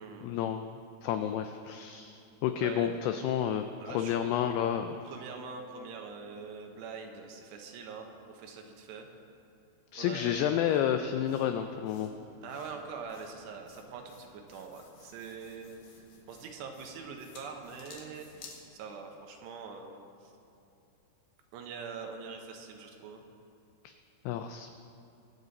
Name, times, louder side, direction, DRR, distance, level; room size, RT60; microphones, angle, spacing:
voice 1, 0.2-5.0 9.9-12.1 23.8-23.9 24.3-24.7, left 9 dB, 85° left, 8 dB, 2.3 m, -30 dB
voice 2, 2.6-2.9 3.8-4.6 5.0-9.1 9.9-10.3 12.4-15.8 16.3-20.3 21.5-23.2, right 5 dB, 75° right, 3 dB, 2.9 m, -44 dB
sound 1, 10.5-18.6, left 4 dB, 60° left, 2.4 m, -56 dB
23.0 x 8.1 x 4.1 m, 2.7 s
omnidirectional pair, 5.2 m